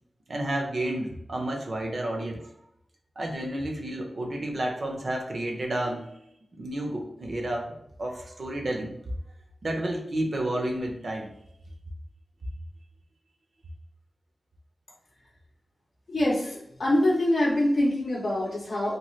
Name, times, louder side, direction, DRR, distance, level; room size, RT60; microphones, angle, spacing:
voice 1, 0.3-2.4 3.2-6.2 6.5-7.7 8.0-8.9 9.6-11.3, right 1 dB, 65° right, 1 dB, 0.6 m, -31 dB
voice 2, 16.1-19.0, left 1 dB, 80° left, -5 dB, 0.5 m, -24 dB
2.9 x 2.3 x 3.0 m, 0.75 s
wide cardioid pair, 100°, 0 cm